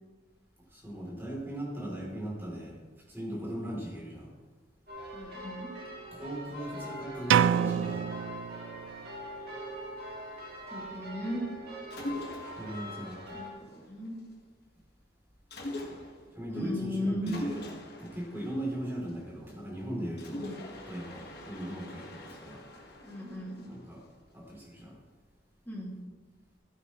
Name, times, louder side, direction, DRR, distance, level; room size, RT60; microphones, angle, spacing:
voice 1, 0.7-2.8 3.1-4.3 6.1-8.0 12.6-13.4 16.3-17.6 18.0-20.5 20.9-22.6 23.7-24.0 24.3-25.0, right 1 dB, 10° right, -4 dB, 3.0 m, -38 dB
sound 1, 4.9-13.5, equal, 55° right, 2.2 m, -43 dB
voice 2, 5.1-5.7 10.7-11.4 13.3-14.2 16.5-17.4 20.3-20.5 23.0-23.7 25.7-26.0, left 1 dB, 10° left, -4 dB, 2.2 m, -36 dB
sound 2, 7.3-9.2, right 8 dB, 85° right, 0.3 m, -27 dB
Mechanisms, 11.9-14.3 15.5-16.4 17.3-19.6 20.2-24.3, left 1 dB, 55° left, 1.5 m, -43 dB
14.5 x 8.6 x 3.1 m, 1.3 s
head